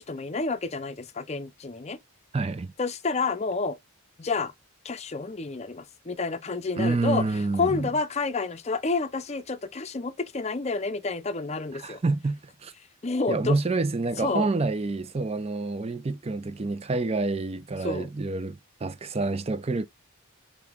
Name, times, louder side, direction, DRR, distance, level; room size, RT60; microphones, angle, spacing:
voice 1, 0.0-2.0 2.8-3.8 4.2-4.5 4.8-7.2 7.6-12.0 13.0-13.6 14.2-14.5 17.8-18.1, left 4 dB, 30° left, 0.5 m, -29 dB
voice 2, 2.3-2.7 6.8-7.9 11.8-12.7 13.3-19.9, right 3 dB, 25° right, 0.4 m, -28 dB
4.8 x 2.9 x 3.5 m
head